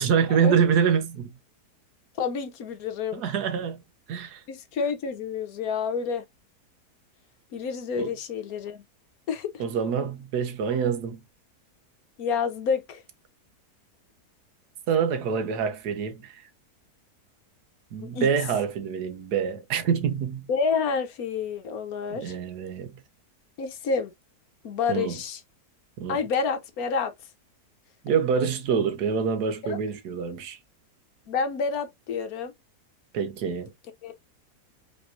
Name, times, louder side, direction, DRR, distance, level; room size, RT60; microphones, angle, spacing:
voice 1, 0.0-1.3 3.1-3.8 4.1-4.4 8.0-8.1 9.6-11.2 14.9-16.4 17.9-20.5 22.1-22.9 24.9-25.2 26.0-26.2 28.0-30.6 33.1-33.7, right 7 dB, 80° right, 1.4 m, -26 dB
voice 2, 2.2-3.2 4.5-6.3 7.5-8.8 9.3-9.6 12.2-13.0 18.0-18.3 20.5-22.3 23.6-24.1 24.6-25.4 26.1-27.1 29.6-29.8 31.3-32.5 34.0-34.1, left 5 dB, 70° left, 1.2 m, -29 dB
5.0 x 3.6 x 2.6 m
omnidirectional pair, 1.7 m